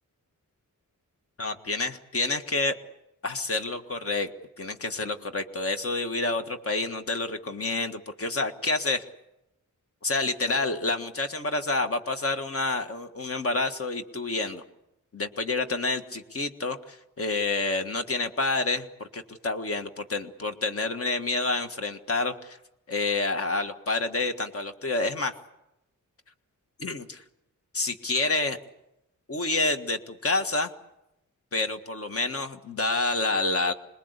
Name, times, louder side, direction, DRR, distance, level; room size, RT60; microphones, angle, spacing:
voice 1, 1.4-2.7 3.2-4.3 4.6-9.1 10.0-14.6 15.1-22.6 22.9-25.4 26.8-27.2 27.7-28.6 29.3-30.7 31.5-33.7, left 3 dB, 45° left, 7 dB, 1.7 m, -28 dB
27.0 x 20.5 x 8.2 m, 0.88 s
wide cardioid pair, 175°, 33 cm